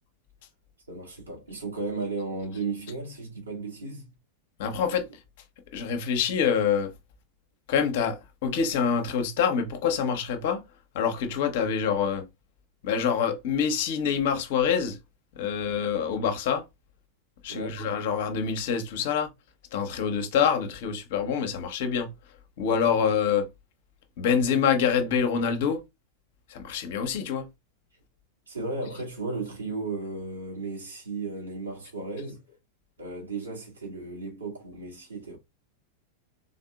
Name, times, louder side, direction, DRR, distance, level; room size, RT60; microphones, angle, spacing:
voice 1, 0.9-4.1 17.5-17.9 28.5-32.4 33.0-35.4, right 3 dB, 75° right, 1.9 m, -35 dB
voice 2, 4.6-5.1 5.7-6.9 7.7-10.6 10.9-12.2 12.8-15.0 15.4-16.6 17.4-19.3 19.7-22.1 22.6-23.5 24.2-25.8 26.5-27.5, left 7 dB, 55° left, 0.8 m, -26 dB
3.9 x 3.6 x 2.3 m
figure-of-eight pair, 90°, 0 cm